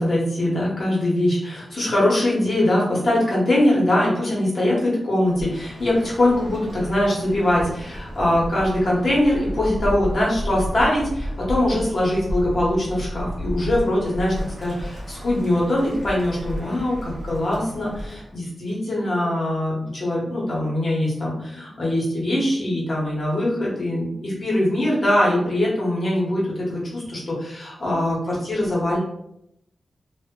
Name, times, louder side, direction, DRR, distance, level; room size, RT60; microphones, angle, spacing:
voice 1, 0.0-29.0, left 1 dB, 45° left, -5 dB, 0.9 m, -22 dB
Bird, 5.2-18.3, equal, 40° right, 0.7 m, -33 dB
2.1 x 2.0 x 3.5 m, 0.78 s
wide cardioid pair, 150°, 0 cm